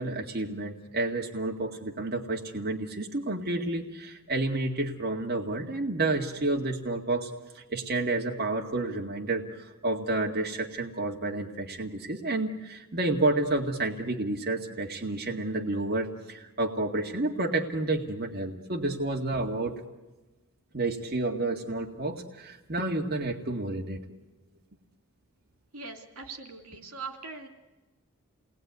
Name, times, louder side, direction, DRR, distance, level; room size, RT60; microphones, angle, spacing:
voice 1, 0.0-19.8 20.7-24.0, right 2 dB, 45° right, 1 dB, 2.0 m, -30 dB
voice 2, 25.7-27.5, right 4 dB, 85° right, 5 dB, 3.0 m, -41 dB
28.5 x 20.0 x 9.5 m, 1.1 s
head